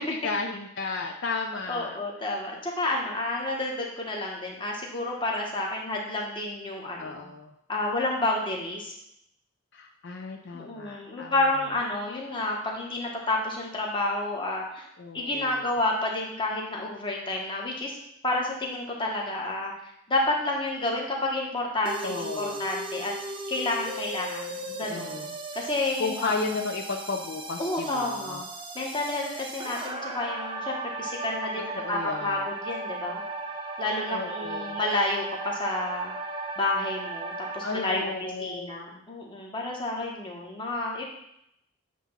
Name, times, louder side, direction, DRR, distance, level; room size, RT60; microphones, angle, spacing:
voice 1, 0.0-2.0 7.0-7.5 9.7-11.3 15.0-15.6 22.0-22.6 24.7-25.3 26.0-28.4 31.7-32.4 34.1-34.8 37.6-38.7, left 3 dB, 55° left, 2 dB, 0.5 m, -33 dB
voice 2, 1.7-7.3 7.7-8.9 10.5-14.9 15.1-18.0 18.2-19.7 20.1-23.1 23.5-25.2 25.5-26.3 27.6-28.4 28.7-33.2 33.8-36.1 36.6-41.0, left 2 dB, 20° left, -1 dB, 1.1 m, -30 dB
sound 1, 21.8-37.8, right 2 dB, 25° right, 0.5 m, -36 dB
8.3 x 2.9 x 5.6 m, 0.77 s
head